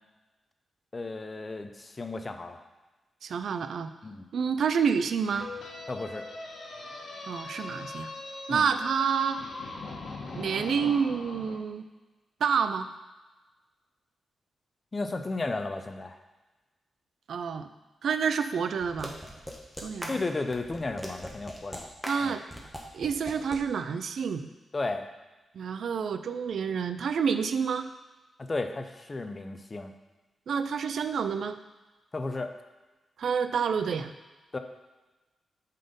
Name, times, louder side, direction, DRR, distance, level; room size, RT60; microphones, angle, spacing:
voice 1, 0.9-2.6 4.0-4.3 5.9-6.2 8.5-8.7 14.9-16.2 20.1-21.9 22.2-22.3 24.7-25.1 28.4-29.9 32.1-32.5 34.5-34.6, left 3 dB, 35° left, 7 dB, 0.7 m, -33 dB
voice 2, 3.2-3.9 4.3-5.5 7.3-8.1 8.5-9.4 10.3-11.9 12.4-12.9 17.3-17.7 18.0-19.2 19.8-20.1 22.1-22.4 22.9-24.5 25.6-27.9 30.5-31.6 33.2-34.1, right 6 dB, 75° right, 9 dB, 0.4 m, -28 dB
sound 1, 5.3-11.6, left 3 dB, 75° left, 1.4 m, -41 dB
sound 2, 18.8-23.6, equal, ahead, 1.2 m, -40 dB
7.6 x 4.2 x 5.2 m, 1.2 s
cardioid pair, 75°, 0 cm